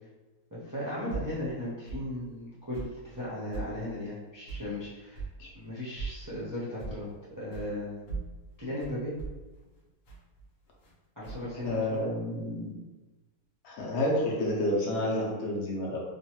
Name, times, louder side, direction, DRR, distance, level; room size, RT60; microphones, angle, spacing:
voice 1, 0.5-5.3 5.5-7.1 7.3-7.9 8.6-9.1 11.2-12.0, left 1 dB, 30° right, -10 dB, 0.3 m, -36 dB
sound 1, 1.1-1.4 1.9-2.1 2.7-3.0 3.5-3.7 4.5-4.7 5.1-5.3 6.0-6.2 6.8-7.1 7.5-7.7 8.1-10.9 11.2-12.0, right 5 dB, 50° left, 0.8 m, -39 dB
voice 2, 11.6-12.7 13.6-16.0, left 1 dB, 70° left, -3 dB, 1.1 m, -29 dB
3.0 x 2.2 x 2.9 m, 1.2 s
omnidirectional pair, 1.6 m